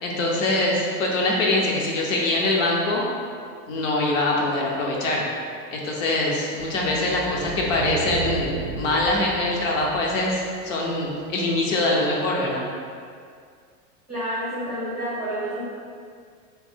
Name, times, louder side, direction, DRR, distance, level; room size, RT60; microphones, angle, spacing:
voice 1, 0.0-3.0 3.7-5.2 5.7-12.6, left 2 dB, 55° left, -2 dB, 0.8 m, -23 dB
sound 1, 6.6-11.0, right 4 dB, 75° right, 0.5 m, -34 dB
voice 2, 14.1-15.6, right 1 dB, 10° left, -15 dB, 0.3 m, -29 dB
3.3 x 2.6 x 3.5 m, 2.1 s
supercardioid pair, 165°, 45 cm